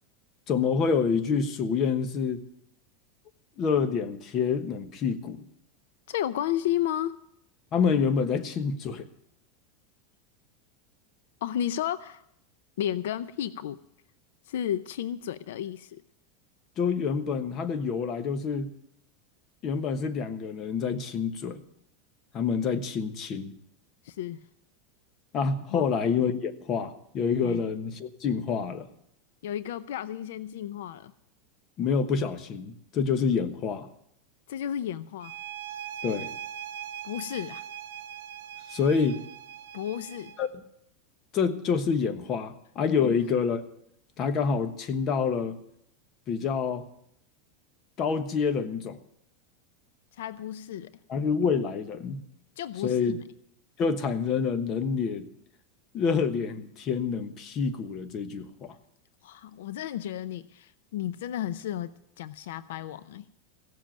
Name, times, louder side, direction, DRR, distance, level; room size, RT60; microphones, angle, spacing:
voice 1, 0.5-2.4 3.6-5.4 7.7-9.1 16.8-18.7 19.6-21.6 22.3-23.5 25.3-28.9 31.8-33.9 36.0-36.3 38.7-39.2 40.4-40.5 41.3-43.6 44.2-45.6 46.3-46.8 48.0-49.0 51.1-52.2 52.8-53.1 53.8-55.3 55.9-58.8, left 6 dB, 30° left, 9 dB, 1.1 m, -27 dB
voice 2, 6.1-7.2 11.4-12.2 12.8-13.8 14.5-16.0 24.0-24.5 25.7-25.9 27.4-27.6 29.4-31.1 34.5-35.3 37.0-37.6 39.7-40.4 43.0-43.1 50.1-50.9 52.6-53.2 59.2-63.3, left 11 dB, 80° left, 15 dB, 0.6 m, -33 dB
sound 1, 35.2-40.5, right 10 dB, 85° right, 1.0 m, -41 dB
16.0 x 7.5 x 9.1 m, 0.74 s
supercardioid pair, 155°, 0 cm